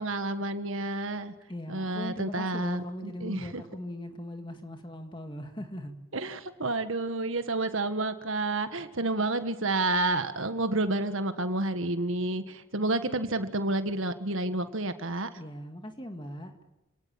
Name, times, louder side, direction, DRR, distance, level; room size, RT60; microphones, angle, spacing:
voice 1, 0.0-1.3 1.7-3.6 6.1-15.3, right 2 dB, 65° right, 9 dB, 1.7 m, -30 dB
voice 2, 1.5-5.9 15.4-16.6, left 1 dB, 20° left, 6 dB, 2.1 m, -39 dB
28.0 x 18.5 x 9.0 m, 0.94 s
head